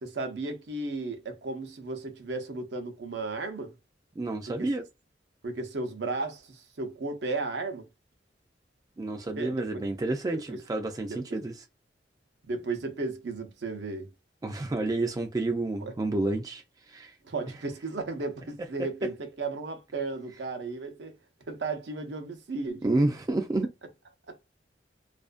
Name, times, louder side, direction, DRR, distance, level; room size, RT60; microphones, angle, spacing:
voice 1, 0.0-3.7 4.5-4.7 5.4-7.9 9.4-9.7 10.3-10.6 11.1-11.4 12.5-14.1 15.8-15.9 17.2-21.1 21.5-22.8 24.3-24.4, right 3 dB, 70° right, 0.6 m, -34 dB
voice 2, 4.2-4.9 9.0-11.6 14.4-17.1 22.8-23.7, right 2 dB, 20° right, 0.3 m, -29 dB
2.4 x 2.2 x 2.4 m
head